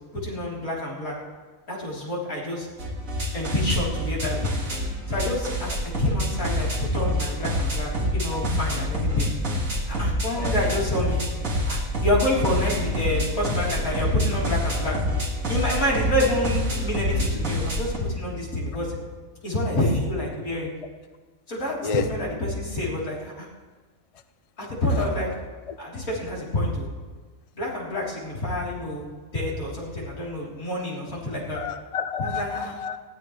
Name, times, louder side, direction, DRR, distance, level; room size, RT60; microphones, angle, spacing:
voice 1, 0.1-1.2 1.7-2.7 3.3-4.5 5.1-9.3 9.9-11.2 11.7-15.0 15.5-19.0 19.4-20.7 21.5-23.5 24.6-25.4 25.8-26.9 27.5-31.6 32.2-32.7, left 1 dB, 75° left, -6 dB, 4.3 m, -27 dB
sound 1, 2.8-18.0, equal, 70° right, 2.6 m, -27 dB
voice 2, 31.6-33.0, left 6 dB, 40° left, 9 dB, 0.5 m, -29 dB
19.5 x 16.0 x 3.3 m, 1.4 s
omnidirectional pair, 1.5 m